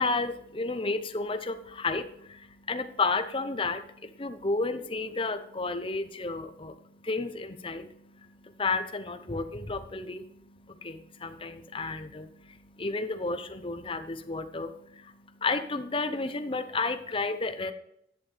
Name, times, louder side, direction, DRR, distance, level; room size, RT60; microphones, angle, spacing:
voice 1, 0.0-17.7, left 3 dB, 30° left, 10 dB, 0.7 m, -32 dB
11.5 x 9.5 x 3.4 m, 0.74 s
head